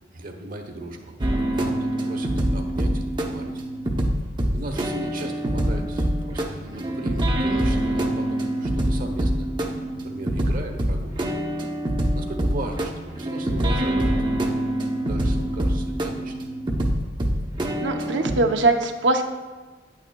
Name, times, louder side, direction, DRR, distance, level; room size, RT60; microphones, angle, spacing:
voice 1, 0.1-3.6 4.5-9.5 10.0-11.2 12.1-14.5 15.0-16.4, right 2 dB, 50° right, 4 dB, 0.9 m, -37 dB
sound 1, 1.2-18.4, right 1 dB, 25° right, 0.7 m, -25 dB
voice 2, 17.8-19.2, right 2 dB, 80° right, 5 dB, 0.7 m, -21 dB
9.7 x 8.9 x 2.2 m, 1.3 s
head